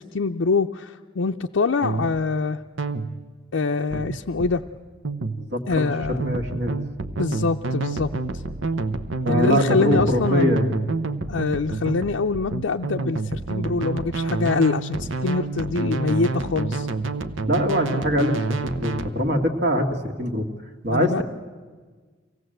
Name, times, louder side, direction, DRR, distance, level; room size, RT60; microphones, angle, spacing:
voice 1, 0.0-2.6 3.5-4.6 5.7-6.3 7.2-8.1 9.3-10.5 11.3-16.9 20.9-21.2, left 4 dB, 85° left, 2 dB, 0.5 m, -24 dB
sound 1, 1.8-2.2 2.8-3.2 3.9-4.6 5.0-5.5 6.0-19.1, right 3 dB, 80° right, 1.0 m, -28 dB
voice 2, 5.4-5.9 6.2-6.8 9.2-10.7 17.4-20.5 20.8-21.2, equal, 55° right, 4 dB, 1.9 m, -23 dB
24.5 x 17.5 x 7.8 m, 1.5 s
head